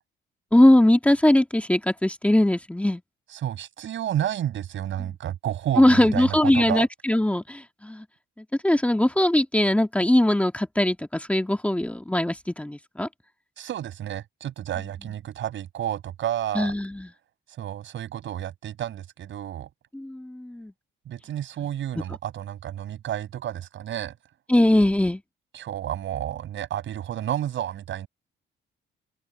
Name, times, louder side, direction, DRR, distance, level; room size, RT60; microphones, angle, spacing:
voice 1, 0.5-3.0 5.8-8.1 8.6-13.1 16.6-17.1 19.9-20.7 22.0-22.1 24.5-25.2, left 1 dB, 5° left, 2.0 m, -21 dB
voice 2, 3.3-6.9 13.6-16.7 17.6-19.7 21.1-24.1 25.5-28.1, right 11 dB, 70° right, 7.1 m, -31 dB
open air
cardioid pair, 90°, 20 cm